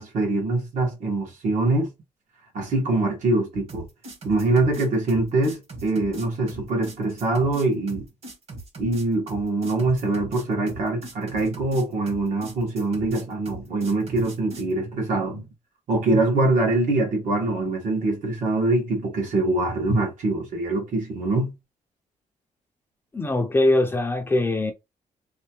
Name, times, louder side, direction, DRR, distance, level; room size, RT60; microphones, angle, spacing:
voice 1, 0.0-1.9 2.5-3.8 4.2-8.0 8.8-15.5 15.9-21.5, right 2 dB, 70° right, 1.7 m, -24 dB
sound 1, 3.7-14.7, right 2 dB, 50° right, 1.7 m, -40 dB
voice 2, 23.1-24.7, left 2 dB, 15° left, 0.5 m, -22 dB
3.5 x 3.3 x 3.0 m
wide cardioid pair, 170°, 13 cm